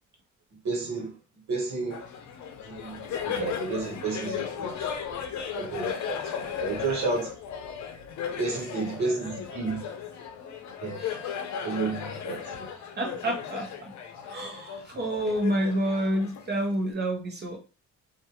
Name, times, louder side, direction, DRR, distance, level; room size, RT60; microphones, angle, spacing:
voice 1, 0.6-1.1 1.5-2.0 2.6-4.9 5.5-6.2 6.6-7.3 8.4-9.8 10.7-11.0 11.6-12.7, right 3 dB, 65° right, 1.2 m, -31 dB
Laughter, 1.9-16.9, left 7 dB, 70° left, 0.6 m, -36 dB
voice 2, 11.0-11.3 13.0-13.9 14.2-17.6, right 1 dB, 35° right, 0.9 m, -29 dB
2.5 x 2.2 x 2.9 m
cardioid pair, 90°, 30 cm